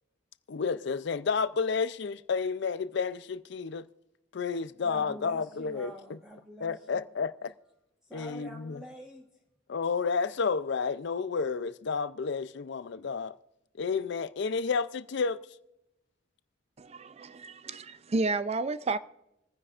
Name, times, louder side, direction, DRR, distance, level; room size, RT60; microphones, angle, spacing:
voice 1, 0.5-3.8 4.3-5.9 6.6-7.5 8.1-8.8 9.7-13.3 13.8-15.4, left 5 dB, 60° left, 0.5 m, -31 dB
voice 2, 4.8-7.1 8.0-9.3, equal, 5° right, 1.3 m, -46 dB
voice 3, 16.8-19.0, right 3 dB, 30° right, 0.4 m, -31 dB
27.0 x 9.7 x 2.5 m
head